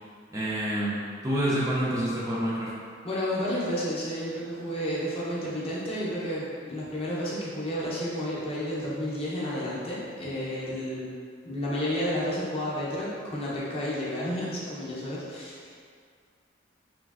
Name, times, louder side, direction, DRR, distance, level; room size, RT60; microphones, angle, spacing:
voice 1, 0.3-2.7, right 1 dB, 15° right, -7 dB, 0.4 m, -28 dB
voice 2, 3.0-11.1 11.4-15.8, equal, 30° left, -7 dB, 0.6 m, -31 dB
3.2 x 2.4 x 2.3 m, 2.1 s
head